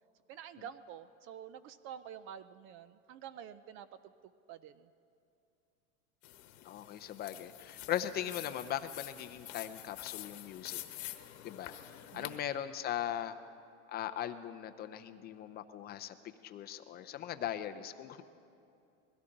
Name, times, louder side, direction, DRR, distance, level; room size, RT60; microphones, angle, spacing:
voice 1, 0.3-3.9 4.5-4.9 12.1-12.4, right 9 dB, 35° right, 14 dB, 0.4 m, -48 dB
sound 1, 6.2-12.4, left 14 dB, 45° left, 1.1 m, -47 dB
voice 2, 6.7-10.8 11.4-13.3 13.9-16.2 16.4-18.2, left 11 dB, 25° left, 9 dB, 0.4 m, -39 dB
22.0 x 16.5 x 3.9 m, 2.6 s
supercardioid pair, 140°, 38 cm